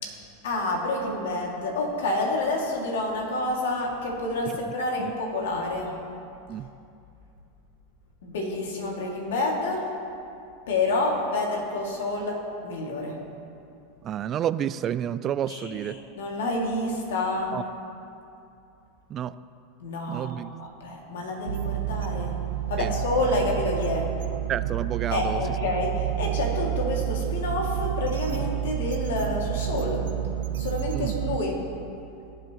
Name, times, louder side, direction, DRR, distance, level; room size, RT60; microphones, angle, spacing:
voice 1, 0.0-6.0 8.2-9.9 10.7-13.2 15.5-17.6 19.8-22.4 22.7-24.1 25.1-30.1 30.6-31.7, left 2 dB, 80° left, 0 dB, 2.2 m, -28 dB
voice 2, 14.0-16.0 17.5-17.6 19.1-19.3 20.1-20.5 22.8-22.9 24.5-25.4 30.9-31.1, right 10 dB, 35° right, 14 dB, 0.3 m, -30 dB
sound 1, 21.5-31.4, right 12 dB, 85° right, 0.6 m, -29 dB
18.5 x 7.6 x 3.0 m, 2.6 s
hypercardioid pair, 110°, 0 cm